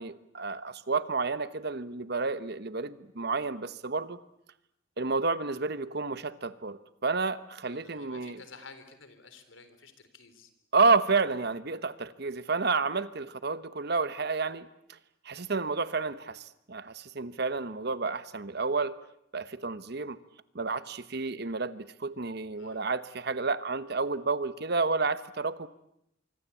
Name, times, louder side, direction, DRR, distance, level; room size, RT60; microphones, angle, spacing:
voice 1, 0.0-4.2 5.0-8.4 10.7-14.7 15.2-19.0 19.3-20.2 20.5-25.7, right 4 dB, 55° right, 13 dB, 1.2 m, -30 dB
voice 2, 7.6-10.5 22.6-22.8, left 4 dB, 80° left, 10 dB, 3.8 m, -51 dB
24.5 x 24.5 x 8.5 m, 0.78 s
head